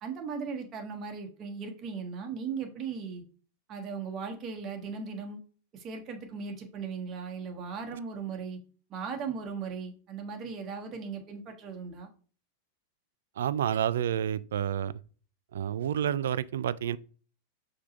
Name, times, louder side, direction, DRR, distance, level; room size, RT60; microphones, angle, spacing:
voice 1, 0.0-3.2 3.7-5.4 5.7-8.6 8.9-12.1, right 5 dB, 30° right, 1.3 m, -37 dB
voice 2, 13.4-14.9 15.5-17.0, right 9 dB, 60° right, 0.3 m, -29 dB
5.3 x 3.9 x 5.0 m
figure-of-eight pair, 90°, 0 cm